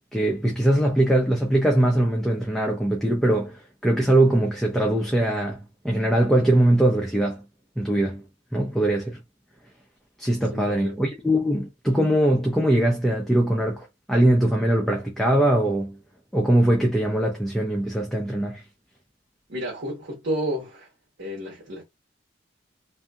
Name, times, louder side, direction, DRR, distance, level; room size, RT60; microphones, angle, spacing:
voice 1, 0.1-7.4 7.8-8.2 8.5-9.2 10.2-16.0 16.3-18.6, right 1 dB, ahead, 0.5 m, -21 dB
voice 2, 10.5-11.0 19.5-20.9 21.2-21.8, equal, 80° right, 1.2 m, -31 dB
2.7 x 2.7 x 2.3 m
head